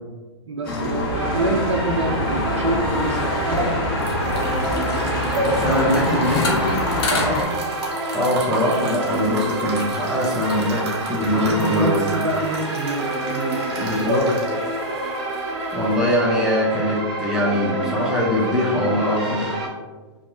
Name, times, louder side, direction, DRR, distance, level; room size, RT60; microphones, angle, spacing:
voice 1, 0.5-3.7 7.1-7.5 11.3-13.9, right 2 dB, 75° right, 1 dB, 0.4 m, -26 dB
sound 1, 0.6-7.4, left 2 dB, 50° left, 0.6 m, -25 dB
sound 2, 1.1-19.7, right 1 dB, 25° right, 0.9 m, -27 dB
sound 3, 3.1-16.1, right 2 dB, 60° right, 0.9 m, -33 dB
voice 2, 5.5-6.7 8.1-12.1 13.8-14.3 15.7-19.5, left 1 dB, 5° right, -7 dB, 0.5 m, -22 dB
2.6 x 2.3 x 2.6 m, 1.3 s
hypercardioid pair, 115°, 15 cm